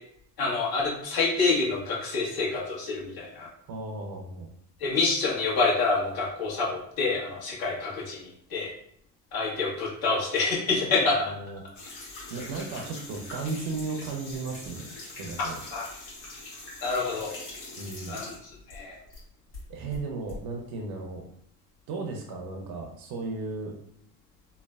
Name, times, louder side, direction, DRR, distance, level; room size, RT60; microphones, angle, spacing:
voice 1, 0.4-3.5 4.8-8.7 9.3-11.2 15.5-15.8 16.8-17.3 18.1-19.0, left 3 dB, 55° left, -4 dB, 1.2 m, -27 dB
voice 2, 3.7-4.5 11.3-11.6 12.3-15.6 17.8-18.2 19.7-21.2 21.9-23.7, right 3 dB, 60° right, 1 dB, 0.6 m, -35 dB
sound 1, 11.7-19.2 19.5-20.4, left 2 dB, 75° left, 1.4 m, -43 dB
3.1 x 2.1 x 2.3 m, 0.68 s
supercardioid pair, 75°, 42 cm